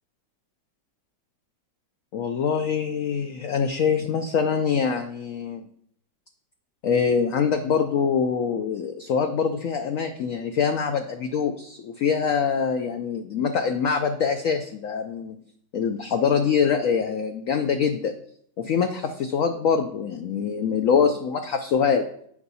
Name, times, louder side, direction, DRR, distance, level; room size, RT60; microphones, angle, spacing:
voice 1, 2.1-5.6 6.8-15.4 15.7-18.1 18.6-22.1, left 6 dB, 85° left, 6 dB, 0.7 m, -24 dB
8.4 x 5.5 x 4.1 m, 0.68 s
omnidirectional pair, 2.0 m